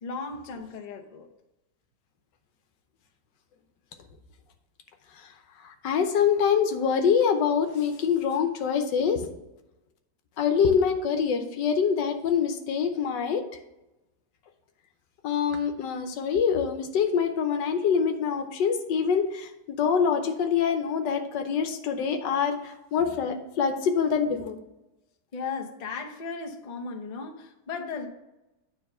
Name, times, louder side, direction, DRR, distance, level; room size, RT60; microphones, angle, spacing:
voice 1, 0.0-1.3 25.3-28.1, left 4 dB, 35° left, 2 dB, 0.6 m, -36 dB
voice 2, 5.6-9.3 10.4-13.4 15.2-24.6, left 7 dB, 85° left, 6 dB, 1.5 m, -25 dB
9.4 x 3.8 x 5.5 m, 0.96 s
omnidirectional pair, 1.9 m